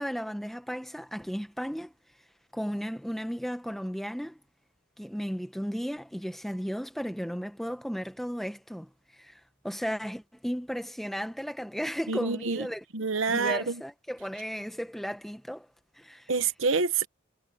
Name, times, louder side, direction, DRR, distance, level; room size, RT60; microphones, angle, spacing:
voice 1, 0.0-1.9 2.5-4.4 5.0-12.8 13.3-15.7 15.9-16.3, equal, ahead, 1.2 m, -35 dB
voice 2, 12.1-12.7 12.9-13.8 16.3-17.1, right 4 dB, 80° right, 1.2 m, -27 dB
head